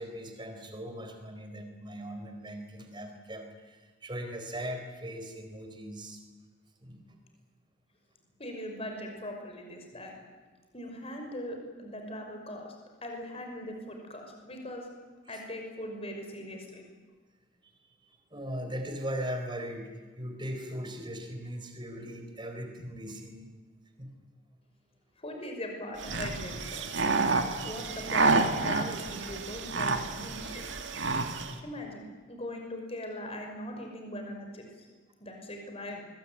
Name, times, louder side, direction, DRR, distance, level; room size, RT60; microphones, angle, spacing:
voice 1, 0.0-6.2 6.8-7.0 15.3-15.4 18.3-23.5 24.0-24.1, equal, 20° right, 5 dB, 4.3 m, -39 dB
voice 2, 8.4-10.1 10.7-12.7 13.0-14.9 15.3-16.9 25.2-26.8 27.6-30.8 31.6-34.9 35.2-36.0, left 1 dB, 30° left, 3 dB, 5.7 m, -40 dB
sound 1, 26.0-31.5, right 3 dB, 60° right, 2.4 m, -29 dB
24.0 x 22.5 x 9.6 m, 1.4 s
head